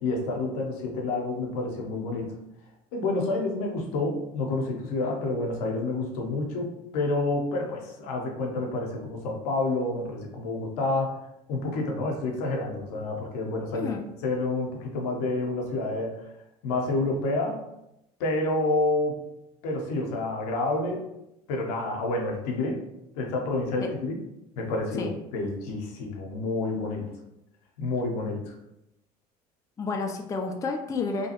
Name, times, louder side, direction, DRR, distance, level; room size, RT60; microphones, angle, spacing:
voice 1, 0.0-2.3 2.9-11.2 11.5-13.9 14.2-16.1 16.6-17.6 18.2-19.2 19.6-21.1 21.5-22.8 23.1-24.2 24.6-27.1 27.8-28.5, left 2 dB, 75° left, 1 dB, 0.7 m, -29 dB
voice 2, 13.7-14.0 23.8-23.9 25.0-25.1 29.8-31.3, left 4 dB, 15° left, 4 dB, 0.3 m, -30 dB
2.7 x 2.2 x 2.8 m, 0.85 s
hypercardioid pair, 80°, 20 cm